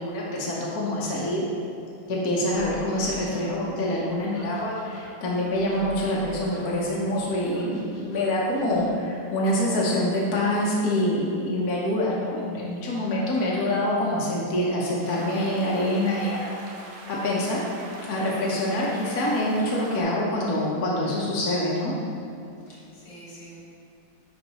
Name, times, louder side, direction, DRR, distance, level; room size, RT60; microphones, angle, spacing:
voice 1, 0.0-1.5 2.1-16.5 17.1-17.6 18.1-21.9, left 1 dB, 60° left, -5 dB, 1.3 m, -25 dB
sound 1, 2.5-8.9, left 1 dB, 35° left, 0.6 m, -45 dB
voice 2, 13.3-13.9 22.7-23.6, equal, 90° left, -6 dB, 2.5 m, -45 dB
sound 2, 15.0-20.0, right 2 dB, 65° right, 1.3 m, -43 dB
10.5 x 3.9 x 3.0 m, 2.6 s
omnidirectional pair, 2.1 m